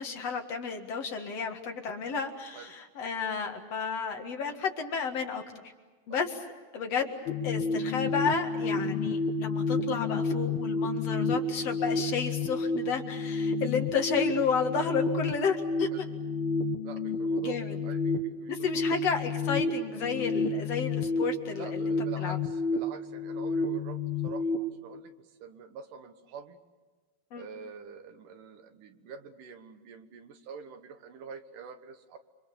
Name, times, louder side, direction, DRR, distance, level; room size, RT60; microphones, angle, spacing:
voice 1, 0.0-5.7 6.1-6.3 6.7-7.1 7.4-15.9 17.4-17.8 18.5-22.4 27.3-27.4, left 6 dB, 50° left, 3 dB, 2.4 m, -32 dB
sound 1, 7.3-24.6, left 3 dB, 70° left, 3.4 m, -30 dB
voice 2, 16.8-17.6 17.8-18.8 21.5-26.6 27.3-32.2, right 6 dB, 65° right, 8 dB, 2.6 m, -46 dB
29.5 x 24.0 x 7.0 m, 1.4 s
omnidirectional pair, 4.6 m